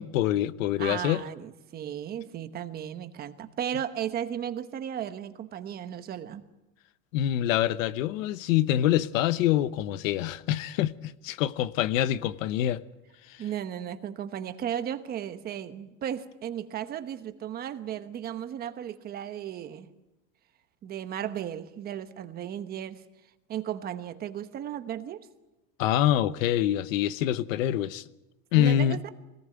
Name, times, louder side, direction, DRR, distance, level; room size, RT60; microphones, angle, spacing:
voice 1, 0.0-1.2 7.1-12.8 25.8-28.0 28.5-29.0, left 12 dB, 90° left, 1.1 m, -25 dB
voice 2, 0.8-6.5 13.4-19.9 20.8-23.0 23.5-25.3 28.5-29.1, right 10 dB, 25° right, 1.0 m, -35 dB
24.0 x 18.5 x 9.0 m
supercardioid pair, 170°, 38 cm